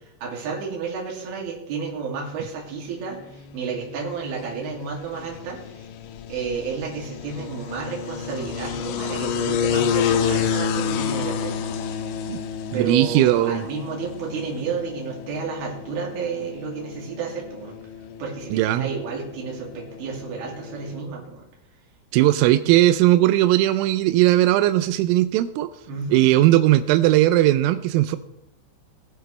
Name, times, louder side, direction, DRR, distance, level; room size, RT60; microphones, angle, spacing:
voice 1, 0.2-5.8 6.3-12.0 12.7-17.7 18.2-21.5 25.9-26.3, right 5 dB, 55° right, -2 dB, 3.9 m, -31 dB
sound 1, 3.0-21.0, left 7 dB, 80° left, 2.8 m, -30 dB
voice 2, 12.7-13.7 18.5-18.9 22.1-25.7 26.1-28.2, right 14 dB, 90° right, 11 dB, 3.2 m, -18 dB
21.0 x 7.8 x 3.2 m, 0.85 s
omnidirectional pair, 5.8 m